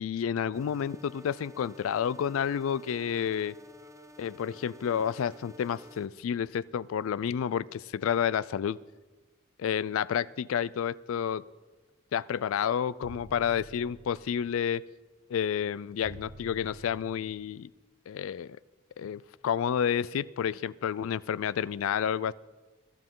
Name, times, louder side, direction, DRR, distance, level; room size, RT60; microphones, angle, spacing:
voice 1, 0.0-3.5 4.2-8.8 9.6-11.4 12.1-14.8 15.3-17.7 18.1-18.6 19.0-22.3, left 8 dB, 70° left, 20 dB, 0.3 m, -30 dB
sound 1, 0.5-6.1, equal, 15° right, 0.7 m, -51 dB
sound 2, 13.0-14.5 16.0-17.5, equal, 55° right, 1.0 m, -49 dB
21.5 x 12.0 x 3.7 m, 1.2 s
head